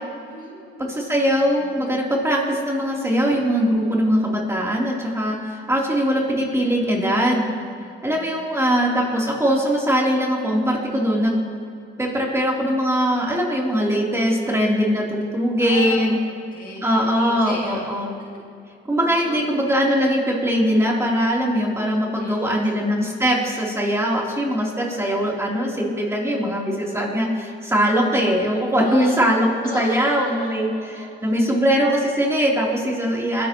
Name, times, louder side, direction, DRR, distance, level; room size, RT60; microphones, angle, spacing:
voice 1, 0.3-1.1 1.7-2.0 7.8-8.5 15.6-18.0 19.0-19.4 22.1-22.7 28.8-29.2 29.6-31.3 33.0-33.4, left 2 dB, 45° left, -3 dB, 2.2 m, -37 dB
voice 2, 0.8-7.5 8.0-11.4 12.0-16.2 16.8-18.1 18.8-33.5, equal, 15° right, -3 dB, 3.3 m, -21 dB
22.0 x 11.5 x 3.0 m, 2.4 s
cardioid pair, 90°, 20 cm